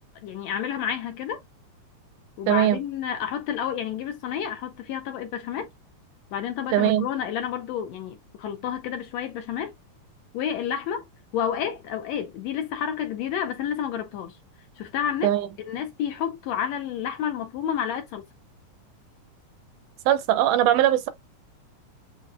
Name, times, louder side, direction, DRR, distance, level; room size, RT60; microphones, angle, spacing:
voice 1, 0.2-1.4 2.4-5.7 6.3-9.7 10.3-11.0 11.3-14.4 14.8-15.3 15.6-18.2, left 9 dB, 75° left, 1.7 m, -30 dB
voice 2, 2.5-2.8 6.7-7.1 15.2-15.5 20.1-21.1, right 12 dB, 80° right, 2.1 m, -20 dB
7.6 x 2.8 x 2.3 m
omnidirectional pair, 3.6 m